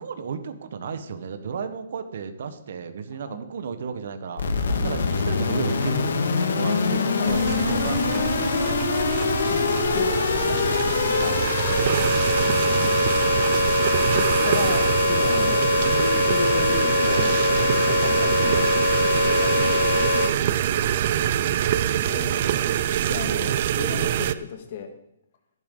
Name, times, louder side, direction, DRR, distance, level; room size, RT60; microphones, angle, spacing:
voice 1, 0.0-4.5 4.8-8.4 18.4-19.1 19.6-20.0, right 6 dB, 55° right, 9 dB, 1.3 m, -34 dB
sound 1, 4.4-20.3, left 3 dB, 75° left, 1.9 m, -23 dB
voice 2, 4.7-5.0 7.2-7.3 9.5-11.4 12.5-13.2 14.1-18.7 19.2-19.7 21.9-22.6 23.1-24.9, left 5 dB, 40° left, 5 dB, 2.0 m, -34 dB
sound 2, 7.3-24.3, right 11 dB, 35° right, 0.5 m, -25 dB
16.0 x 11.0 x 4.0 m, 0.77 s
hypercardioid pair, 175°, 0 cm